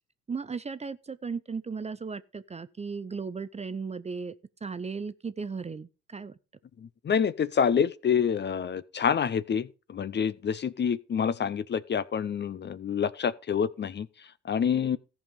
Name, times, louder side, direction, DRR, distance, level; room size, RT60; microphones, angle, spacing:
voice 1, 0.3-4.3 4.6-6.4, right 5 dB, 20° right, 0.5 m, -36 dB
voice 2, 6.8-14.1 14.4-15.0, left 7 dB, 35° left, 0.6 m, -27 dB
14.0 x 5.5 x 5.1 m
supercardioid pair, 75°, 32 cm